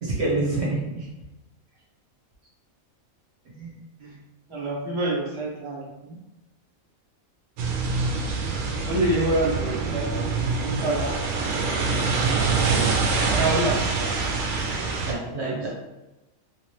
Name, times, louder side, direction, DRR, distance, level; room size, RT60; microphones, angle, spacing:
voice 1, 0.0-1.1 3.5-3.8 15.1-15.7, right 2 dB, 55° right, -3 dB, 1.1 m, -27 dB
voice 2, 4.5-6.2 8.3-8.6 8.8-12.7 13.3-14.2 15.4-15.7, right 1 dB, 25° right, -6 dB, 0.7 m, -29 dB
sound 1, 7.6-15.1, right 4 dB, 85° right, 1.1 m, -25 dB
3.3 x 3.1 x 2.9 m, 1.0 s
omnidirectional pair, 1.5 m